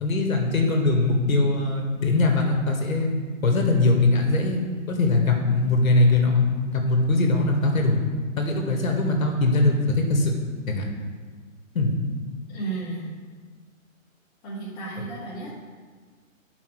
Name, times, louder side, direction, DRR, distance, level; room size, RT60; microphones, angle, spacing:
voice 1, 0.0-3.1 3.4-4.6 4.9-8.0 8.4-10.3 10.7-10.8 11.7-11.9, left 2 dB, 80° left, 1 dB, 2.0 m, -21 dB
voice 2, 12.5-13.2 14.4-15.5, right 3 dB, 15° left, -7 dB, 1.6 m, -33 dB
9.0 x 5.6 x 4.6 m, 1.5 s
hypercardioid pair, 170°, 41 cm